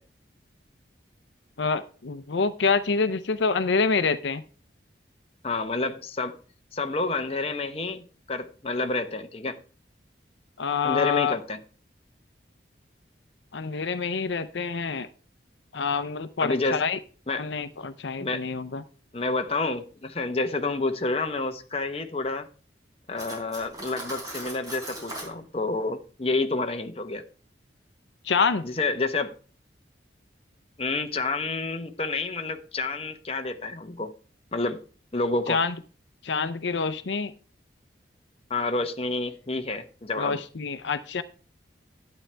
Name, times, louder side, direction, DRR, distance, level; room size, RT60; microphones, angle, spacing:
voice 1, 1.6-4.4 10.6-11.3 13.5-15.1 15.7-17.0 17.4-18.8 28.2-28.6 35.5-35.7 36.2-37.3 40.2-41.2, left 5 dB, 75° left, 0.6 m, -26 dB
voice 2, 5.4-6.3 6.7-9.6 10.8-11.6 16.4-16.8 17.3-17.5 18.2-18.5 19.1-22.5 23.1-27.2 28.6-29.3 30.8-34.1 34.5-34.8 35.1-35.6 38.5-40.4, left 3 dB, 30° left, 0.9 m, -29 dB
Cutlery silverware, 23.2-25.3, right 1 dB, 20° right, 4.1 m, -39 dB
11.5 x 8.8 x 3.3 m
head